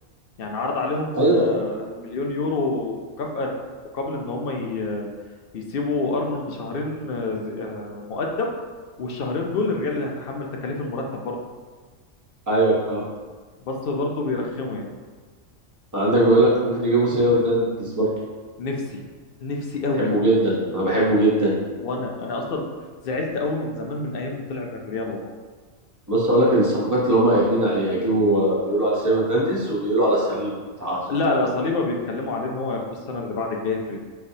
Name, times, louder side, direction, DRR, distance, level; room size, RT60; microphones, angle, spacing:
voice 1, 0.4-3.5 3.9-5.1 5.5-8.5 9.0-11.4 13.6-14.9 18.6-19.0 19.4-20.1 21.8-22.6 23.0-25.2 31.1-34.0, left 3 dB, 60° left, 1 dB, 0.6 m, -27 dB
voice 2, 1.1-1.5 12.5-13.0 15.9-18.1 20.0-21.6 26.1-31.0, right 1 dB, 15° right, -6 dB, 0.9 m, -20 dB
4.9 x 3.3 x 2.7 m, 1.4 s
omnidirectional pair, 1.4 m